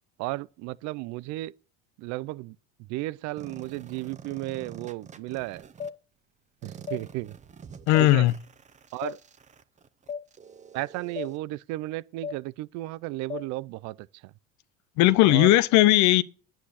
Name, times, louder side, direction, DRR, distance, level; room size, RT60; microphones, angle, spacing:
voice 1, 0.2-1.5 2.0-2.6 2.9-5.6 6.6-7.3 8.0-8.2 8.9-9.2 10.7-14.0 15.3-15.5, right 19 dB, 65° right, 0.6 m, -34 dB
sound 1, 3.4-5.9 6.6-11.4, right 6 dB, 25° right, 1.0 m, -47 dB
sound 2, 5.8-6.0 6.9-7.0 7.9-8.1 9.0-9.2 10.1-10.2 11.2-11.3 12.2-12.4 13.3-13.5, left 6 dB, 20° left, 0.4 m, -34 dB
voice 2, 7.9-8.3 15.0-16.2, left 17 dB, 65° left, 0.9 m, -18 dB
9.7 x 9.0 x 4.2 m
supercardioid pair, 115°, 30 cm